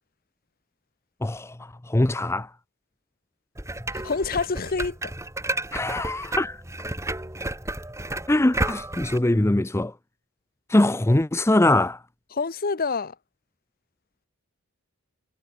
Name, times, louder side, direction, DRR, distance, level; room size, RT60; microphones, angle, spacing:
voice 1, 1.2-2.5 5.7-6.6 8.3-9.9 10.7-12.0, left 1 dB, 10° left, 0.5 m, -22 dB
sound 1, 3.6-9.2, right 2 dB, 15° right, 3.4 m, -32 dB
voice 2, 3.9-5.0 5.9-6.1 12.3-13.1, left 4 dB, 40° left, 0.9 m, -27 dB
head